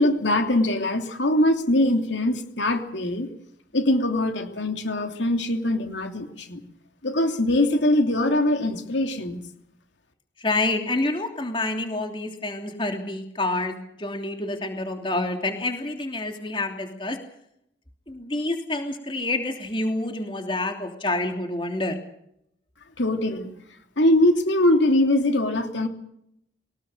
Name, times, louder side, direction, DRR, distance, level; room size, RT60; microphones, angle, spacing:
voice 1, 0.0-3.3 3.7-6.6 7.0-9.4 23.0-23.5 24.0-25.9, left 1 dB, 80° left, 5 dB, 3.0 m, -22 dB
voice 2, 10.4-17.2 18.1-22.0, left 2 dB, 25° left, 4 dB, 3.1 m, -28 dB
23.0 x 20.0 x 6.7 m, 0.74 s
head